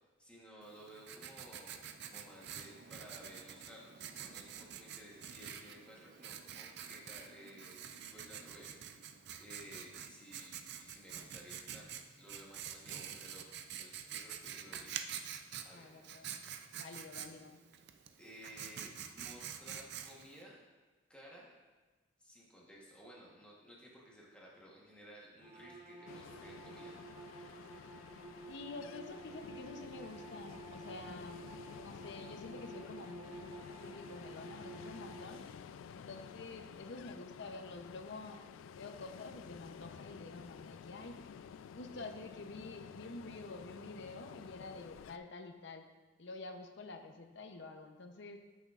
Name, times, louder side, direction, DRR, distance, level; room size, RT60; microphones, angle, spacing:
voice 1, 0.0-8.8 9.4-13.5 13.8-15.9 18.2-20.6 21.1-21.5 22.2-27.0 35.3-35.5, equal, 5° left, -4 dB, 1.1 m, -56 dB
Writing, 0.6-20.4, right 8 dB, 55° right, 0.5 m, -47 dB
voice 2, 15.7-16.4 16.8-17.6 28.5-31.4 31.8-35.4 35.9-38.4 38.7-41.2 41.7-45.9 46.2-48.4, left 3 dB, 65° left, 6 dB, 0.7 m, -48 dB
sound 1, 25.4-35.6, right 2 dB, 25° right, 1.2 m, -52 dB
Ocean, 26.1-45.2, left 7 dB, 85° left, 0.3 m, -52 dB
13.0 x 6.3 x 2.4 m, 1.3 s
head